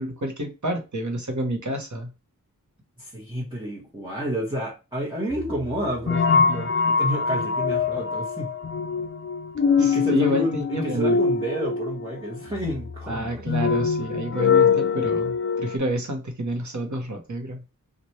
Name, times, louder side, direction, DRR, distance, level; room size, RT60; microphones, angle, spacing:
voice 1, 0.0-2.1 9.8-11.2 13.1-17.6, right 1 dB, 60° right, 3 dB, 1.1 m, -29 dB
voice 2, 3.0-8.5 9.8-13.5, right 1 dB, 15° right, -5 dB, 1.2 m, -30 dB
sound 1, 5.3-15.8, left 5 dB, 40° left, 0.4 m, -24 dB
3.2 x 2.5 x 4.2 m, 0.30 s
wide cardioid pair, 60°, 34 cm